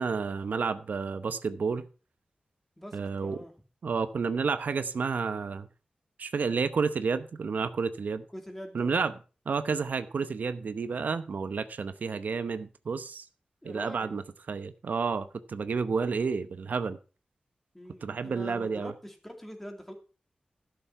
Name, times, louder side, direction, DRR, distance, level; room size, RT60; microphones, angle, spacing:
voice 1, 0.0-1.8 2.9-3.4 3.8-5.7 6.2-8.2 8.7-9.1 9.5-13.3 13.6-17.0 18.0-18.9, right 5 dB, 85° right, 0.8 m, -30 dB
voice 2, 2.8-3.5 8.3-9.0 13.6-14.1 17.7-19.9, equal, 10° left, 2.5 m, -44 dB
12.5 x 6.9 x 5.6 m
wide cardioid pair, 105°, 3 cm